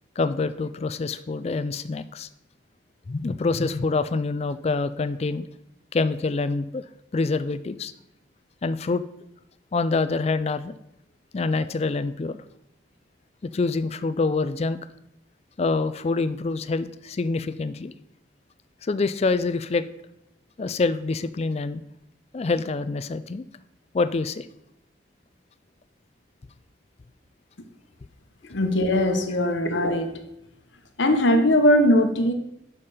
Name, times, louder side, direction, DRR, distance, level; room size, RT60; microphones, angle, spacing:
voice 1, 0.2-2.3 3.1-5.5 5.9-6.8 7.1-7.9 8.6-9.0 9.7-10.7 11.3-12.4 13.4-14.8 15.6-17.9 18.8-19.9 20.6-21.8 22.3-23.4 23.9-24.5, left 3 dB, 35° left, 13 dB, 0.4 m, -26 dB
voice 2, 28.5-30.2 31.0-32.3, left 1 dB, 75° left, 6 dB, 1.0 m, -20 dB
6.7 x 5.6 x 5.0 m, 0.81 s
head